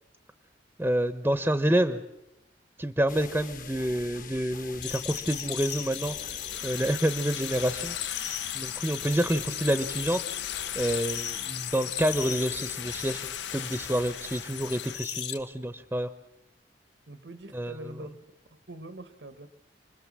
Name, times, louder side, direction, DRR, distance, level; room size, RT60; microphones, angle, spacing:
voice 1, 0.8-2.0 2.8-6.4 6.6-8.2 8.5-10.2 10.8-16.1 17.5-18.0, right 1 dB, 10° right, 11 dB, 0.8 m, -28 dB
sound 1, 3.1-15.0, left 5 dB, 50° left, 1.3 m, -46 dB
sound 2, 4.8-15.4, left 11 dB, 70° left, 2.1 m, -36 dB
sound 3, 6.5-14.9, left 9 dB, 85° left, 1.0 m, -41 dB
voice 2, 17.1-18.2 18.5-19.5, right 1 dB, 75° right, 11 dB, 1.3 m, -43 dB
29.0 x 21.5 x 7.5 m, 0.92 s
head